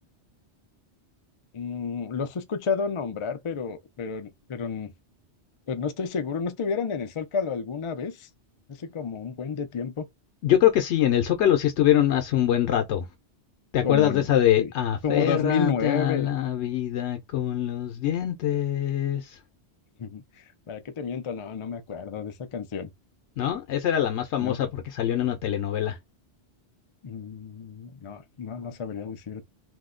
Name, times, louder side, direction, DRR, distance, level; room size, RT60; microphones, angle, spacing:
voice 1, 1.5-4.9 5.7-8.3 8.7-10.1 13.8-14.3 14.6-14.7 15.0-16.3 20.0-22.9 24.4-24.6 27.0-29.4, left 6 dB, 55° left, 0.3 m, -31 dB
voice 2, 10.4-13.1 13.7-19.4 23.4-26.0, left 11 dB, 90° left, 0.9 m, -24 dB
2.7 x 2.1 x 3.6 m
omnidirectional pair, 1.1 m